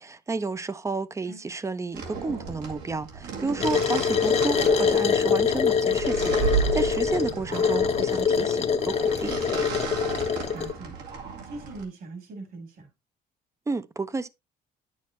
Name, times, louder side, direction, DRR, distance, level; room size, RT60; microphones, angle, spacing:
voice 1, 0.0-9.4 13.7-14.3, right 3 dB, 15° right, 0.6 m, -31 dB
sound 1, 1.9-11.8, right 6 dB, 80° right, 2.3 m, -33 dB
sound 2, 3.6-10.7, left 6 dB, 40° left, 0.8 m, -24 dB
voice 2, 10.5-11.0 11.4-12.9, right 3 dB, 60° right, 3.0 m, -40 dB
9.5 x 6.4 x 2.9 m
cardioid pair, 110°, 17 cm